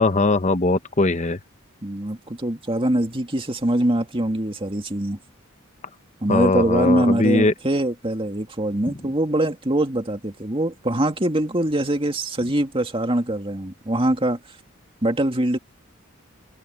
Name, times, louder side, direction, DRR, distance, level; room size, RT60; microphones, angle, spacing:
voice 1, 0.0-1.4 6.3-7.5, left 2 dB, 30° left, 1.0 m, -20 dB
voice 2, 1.8-5.2 6.2-14.4 15.0-15.6, right 1 dB, 25° right, 2.3 m, -23 dB
head